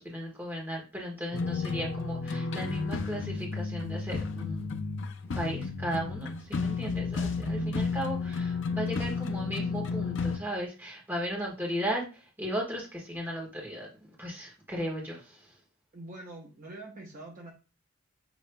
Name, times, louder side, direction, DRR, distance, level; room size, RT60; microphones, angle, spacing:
voice 1, 0.0-4.7 5.3-13.9 14.2-15.5, equal, 10° right, -2 dB, 1.4 m, -36 dB
sound 1, 1.3-10.4, left 4 dB, 60° left, 0.5 m, -32 dB
voice 2, 15.9-17.5, right 2 dB, 40° right, 0 dB, 0.8 m, -45 dB
6.9 x 3.0 x 2.2 m, 0.32 s
head